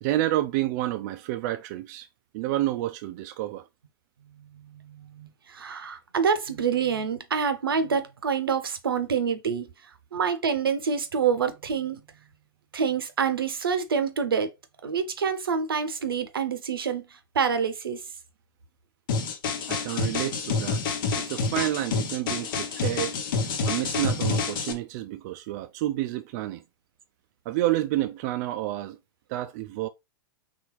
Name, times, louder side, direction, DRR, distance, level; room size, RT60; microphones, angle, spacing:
voice 1, 0.0-2.1 2.3-3.7 19.7-23.2 23.7-26.6 27.5-29.0 29.3-29.9, right 15 dB, 50° right, 0.4 m, -29 dB
voice 2, 4.4-12.0 12.7-14.5 14.8-18.0, right 6 dB, 80° right, 0.7 m, -27 dB
sound 1, 19.1-24.7, left 4 dB, 65° left, 1.0 m, -28 dB
4.2 x 3.5 x 3.1 m
hypercardioid pair, 100°, 12 cm